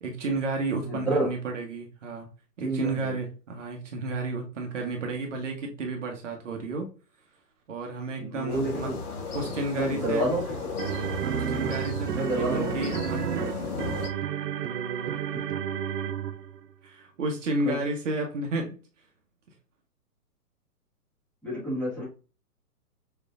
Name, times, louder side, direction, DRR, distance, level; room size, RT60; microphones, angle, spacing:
voice 1, 0.0-2.3 2.6-6.9 7.7-8.9 9.3-10.2 11.3-13.9 16.8-18.7, right 2 dB, 50° right, 1.3 m, -32 dB
voice 2, 0.8-1.3 2.6-3.2 8.2-9.0 9.7-10.5 12.1-12.7 15.3-15.4 17.6-17.8 21.4-22.0, right 1 dB, 5° left, 1.8 m, -29 dB
sound 1, 8.5-14.1, left 4 dB, 65° left, 1.7 m, -35 dB
sound 2, 10.2-16.6, right 9 dB, 85° right, 0.7 m, -31 dB
6.5 x 3.1 x 2.6 m
hypercardioid pair, 165°, 47 cm